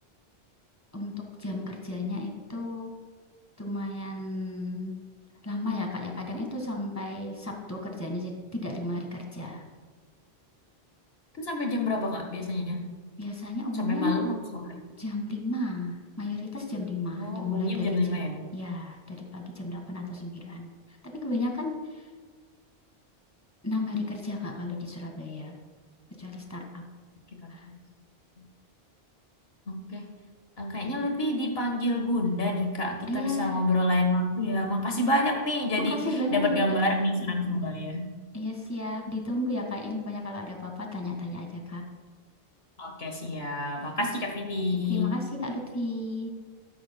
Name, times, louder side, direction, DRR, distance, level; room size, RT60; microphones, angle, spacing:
voice 1, 1.4-2.9 3.6-5.0 5.4-9.6 13.2-14.2 15.0-18.2 18.5-20.7 21.2-22.1 23.6-25.6 26.2-26.8 27.5-27.7 33.1-33.6 35.8-36.8 38.3-41.8 44.9-46.3, left 2 dB, 15° left, 1 dB, 1.7 m, -33 dB
voice 2, 11.4-12.8 13.8-14.8 17.1-18.4 27.4-27.5 28.4-28.5 29.7-30.0 30.6-38.1 42.8-45.1, left 1 dB, 70° left, 2 dB, 1.7 m, -28 dB
12.5 x 12.5 x 2.2 m, 1.5 s
omnidirectional pair, 1.1 m